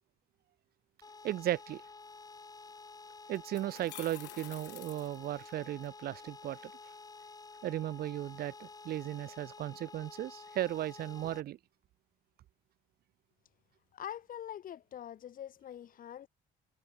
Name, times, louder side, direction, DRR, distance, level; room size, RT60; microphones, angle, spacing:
sound 1, 1.0-11.4, left 4 dB, 20° left, 2.9 m, -51 dB
voice 1, 1.2-1.8 3.3-6.7 7.6-11.6, right 13 dB, 65° right, 1.9 m, -36 dB
sound 2, 2.7-2.8 3.3-5.9, left 19 dB, 85° left, 2.8 m, -50 dB
voice 2, 13.9-16.3, left 10 dB, 55° left, 4.8 m, -44 dB
cardioid pair, 110°, 17 cm